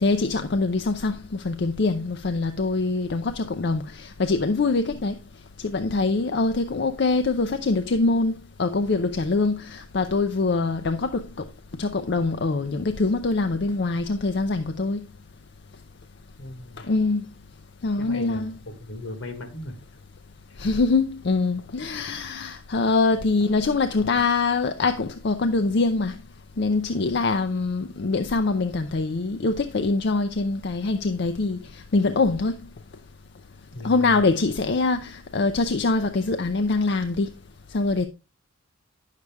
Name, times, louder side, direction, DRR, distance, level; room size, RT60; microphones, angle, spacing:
voice 1, 0.0-5.1 5.6-11.4 11.8-15.0 16.8-17.2 17.8-18.5 20.6-26.2 26.6-32.6 33.8-37.3 37.7-38.1, left 3 dB, 55° left, 0.5 m, -24 dB
voice 2, 16.4-16.8 18.0-19.8 20.5-20.7 33.7-34.2, left 1 dB, 75° left, 1.5 m, -37 dB
9.5 x 6.6 x 3.4 m
head